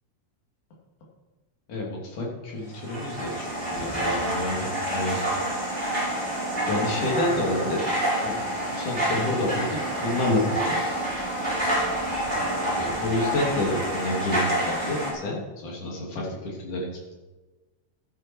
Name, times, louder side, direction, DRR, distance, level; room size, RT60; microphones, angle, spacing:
voice 1, 1.7-5.2 6.7-7.8 8.2-8.4 8.7-10.9 12.8-17.1, left 1 dB, 75° left, -2 dB, 4.6 m, -29 dB
sound 1, 2.7-15.1, right 1 dB, 15° right, 5.9 m, -28 dB
14.5 x 12.0 x 4.7 m, 1.2 s
omnidirectional pair, 3.6 m